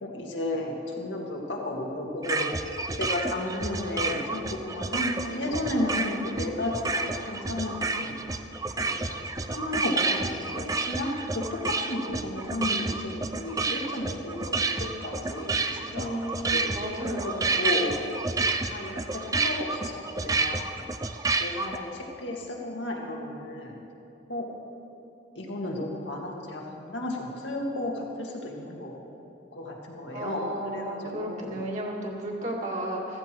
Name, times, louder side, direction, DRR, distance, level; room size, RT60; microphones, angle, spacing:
voice 1, 0.0-2.5 3.0-8.1 8.8-9.2 9.5-16.2 16.5-16.6 17.0-17.3 17.6-17.9 18.7-19.9 20.2-20.9 21.4-23.8 24.3-24.5 25.4-28.9 29.5-30.4 30.7-31.6, left 1 dB, 75° left, -1 dB, 2.1 m, -33 dB
sound 1, 2.2-21.8, right 3 dB, 20° right, 0.5 m, -30 dB
voice 2, 5.4-6.2 15.9-17.6 30.1-33.2, right 1 dB, 40° right, -2 dB, 2.1 m, -34 dB
15.0 x 14.5 x 4.6 m, 2.8 s
head